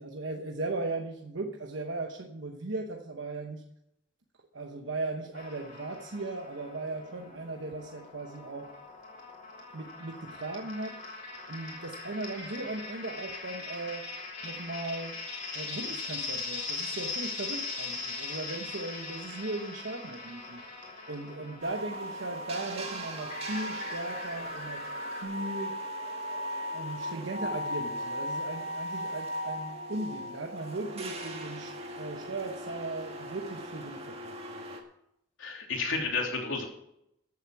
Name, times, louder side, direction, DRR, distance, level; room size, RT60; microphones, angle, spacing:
voice 1, 0.0-3.6 4.5-8.7 9.7-11.0 11.5-14.1 14.4-15.2 15.5-20.7 21.1-24.9 25.2-25.8 26.7-34.6, right 2 dB, 70° right, 3 dB, 1.0 m, -37 dB
sound 1, 5.3-25.2, left 3 dB, 40° left, 3.2 m, -41 dB
sound 2, 21.6-34.8, equal, 30° right, 1.8 m, -38 dB
voice 2, 35.4-36.6, left 4 dB, 85° left, 1 dB, 3.1 m, -31 dB
14.0 x 8.1 x 5.9 m, 0.79 s
head